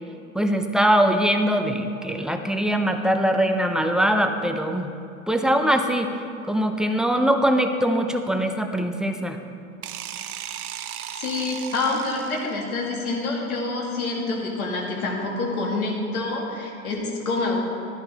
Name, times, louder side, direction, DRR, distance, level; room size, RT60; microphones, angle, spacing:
voice 1, 0.3-4.9 5.3-6.1 6.5-9.4, equal, ahead, 5 dB, 0.5 m, -22 dB
sound 1, 9.8-12.7, right 10 dB, 80° right, 0.6 m, -36 dB
voice 2, 11.2-17.6, left 3 dB, 75° left, -2 dB, 2.3 m, -27 dB
11.5 x 11.0 x 3.5 m, 2.6 s
hypercardioid pair, 90°, 43 cm